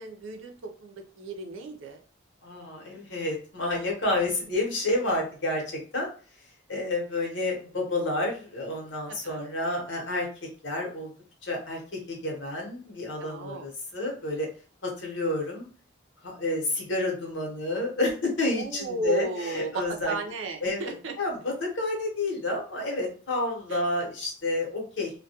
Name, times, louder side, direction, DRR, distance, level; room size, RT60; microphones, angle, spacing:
voice 1, 0.0-2.0 9.1-9.4 13.2-13.7 18.5-21.1 23.7-23.8, right 3 dB, 80° right, 3 dB, 0.5 m, -34 dB
voice 2, 2.4-6.1 6.7-10.3 10.6-11.1 11.4-14.5 14.8-15.6 16.2-20.1 20.6-25.1, left 2 dB, 70° left, -1 dB, 0.9 m, -30 dB
2.3 x 2.2 x 2.7 m, 0.39 s
head